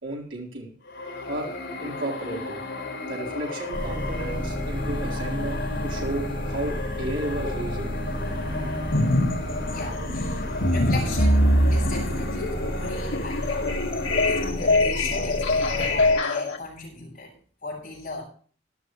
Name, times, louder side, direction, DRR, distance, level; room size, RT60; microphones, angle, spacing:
voice 1, 0.0-0.7 1.3-1.5 1.8-2.6 3.1-7.9, right 1 dB, 80° right, -3 dB, 4.3 m, -33 dB
sound 1, 0.8-14.5, left 2 dB, 65° left, 4.6 m, -34 dB
sound 2, 3.7-16.1, equal, 30° right, 4.7 m, -32 dB
sound 3, 8.9-9.4 9.7-16.6, left 1 dB, 90° left, 1.9 m, -23 dB
voice 2, 9.7-10.4 10.7-11.4 11.7-13.6 14.3-17.3 17.6-18.2, left 2 dB, 40° left, -8 dB, 7.2 m, -38 dB
16.5 x 12.0 x 3.3 m, 0.43 s
head